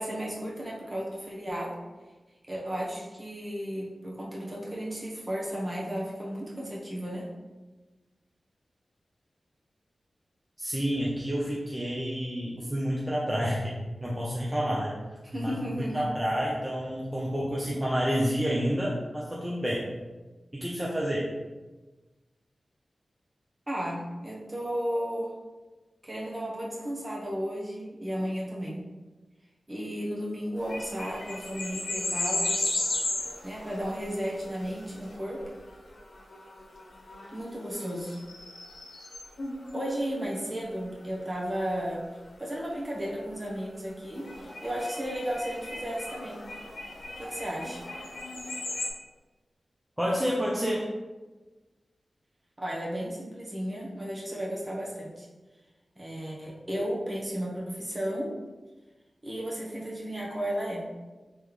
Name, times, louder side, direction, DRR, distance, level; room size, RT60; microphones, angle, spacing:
voice 1, 0.0-1.8 2.5-7.3 15.2-16.1 23.7-25.3 26.0-28.9 29.7-32.8 33.4-35.5 37.3-38.2 39.7-42.1 42.4-46.4 47.2-47.9 52.6-55.3 56.0-58.3 59.2-60.9, equal, 30° right, -4 dB, 1.1 m, -34 dB
voice 2, 10.6-13.7 14.0-15.0 15.3-19.8 20.5-21.3 50.0-50.8, equal, 15° right, -5 dB, 0.7 m, -29 dB
sound 1, 30.6-39.8 44.1-48.9, left 2 dB, 80° left, 0.9 m, -35 dB
3.7 x 3.2 x 3.2 m, 1.2 s
cardioid pair, 50°, 0 cm